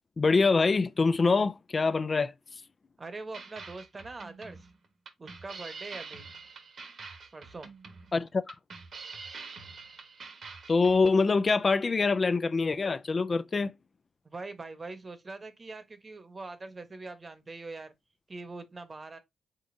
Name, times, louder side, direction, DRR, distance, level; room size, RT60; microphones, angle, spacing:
voice 1, 0.2-2.3 8.1-8.5 10.7-13.7, left 4 dB, 35° left, 0.3 m, -25 dB
voice 2, 3.0-4.7 5.2-6.3 7.3-7.7 14.2-17.9 18.3-19.2, right 3 dB, 30° right, 1.0 m, -43 dB
sound 1, 3.3-11.2, right 4 dB, 60° right, 1.2 m, -46 dB
5.1 x 3.8 x 2.6 m
cardioid pair, 75°, 0 cm